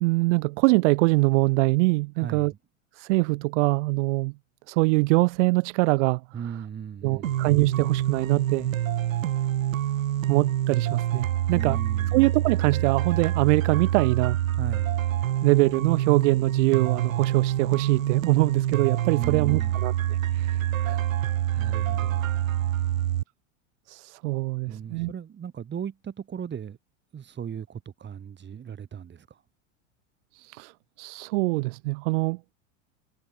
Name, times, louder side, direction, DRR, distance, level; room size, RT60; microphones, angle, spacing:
voice 1, 0.0-2.5 3.0-4.3 4.7-6.2 7.0-8.7 10.3-11.8 12.1-14.4 15.4-21.0 21.5-21.7 23.9-25.1 30.3-30.7 31.0-32.4, right 25 dB, 65° right, 0.7 m, -23 dB
voice 2, 2.2-2.6 6.3-7.5 11.5-12.2 14.5-15.0 19.2-19.8 21.5-22.3 24.6-26.8 27.1-29.4, right 8 dB, 25° right, 6.6 m, -37 dB
sound 1, 7.2-23.2, right 12 dB, 90° right, 1.7 m, -26 dB
hypercardioid pair, 110°, 39 cm